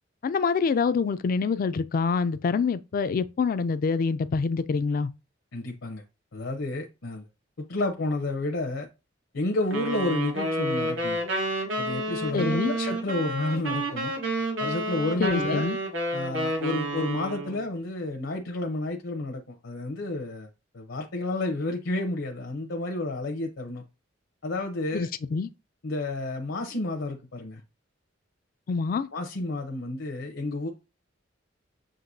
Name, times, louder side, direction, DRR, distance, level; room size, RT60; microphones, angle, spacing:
voice 1, 0.2-5.1 12.3-12.8 15.2-15.8 24.9-25.5 28.7-29.1, left 5 dB, 45° left, 0.3 m, -26 dB
voice 2, 5.5-6.0 6.3-7.2 7.6-8.9 9.3-11.2 11.8-14.1 14.6-15.7 16.1-20.5 20.7-23.8 24.4-25.1 25.8-27.6 29.1-30.7, left 2 dB, 80° left, 0.8 m, -30 dB
sound 1, 9.7-17.6, right 1 dB, 85° right, 1.3 m, -30 dB
7.5 x 2.6 x 2.6 m
head